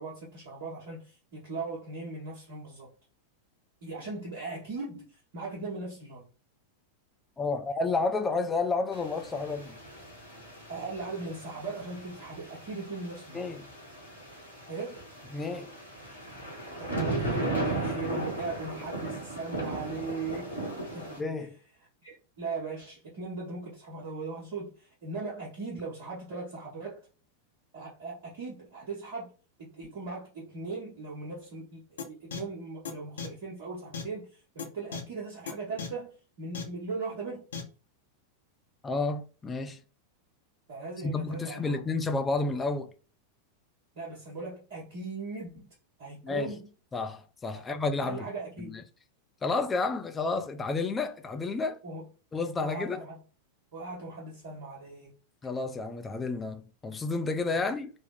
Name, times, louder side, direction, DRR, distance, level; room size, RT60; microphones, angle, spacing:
voice 1, 0.0-2.9 3.8-6.3 10.7-13.5 14.7-15.0 16.8-20.5 20.9-21.1 22.0-27.1 27.7-29.3 29.6-37.5 40.7-41.8 44.0-45.7 46.0-46.7 47.7-48.8 51.8-52.0 52.6-53.2 53.7-55.1 57.5-57.6, right 3 dB, 50° right, 1.0 m, -39 dB
voice 2, 7.4-9.8 13.3-13.7 15.3-15.7 21.2-21.6 38.8-39.8 41.0-42.9 46.2-46.5 46.9-48.3 48.6-48.8 49.4-51.8 52.3-53.0 55.4-57.9, left 3 dB, 15° left, 0.4 m, -31 dB
sound 1, 8.9-21.2, right 2 dB, 90° left, 1.1 m, -36 dB
sound 2, 32.0-32.1 32.3-32.4 32.8-32.9 33.2-33.3 33.9-34.0 34.6-34.7 34.9-35.0 35.5-35.6 35.8-35.9 36.5-36.6 37.5-37.6, left 6 dB, 65° left, 0.7 m, -35 dB
3.4 x 2.0 x 3.5 m
figure-of-eight pair, 90°, 0 cm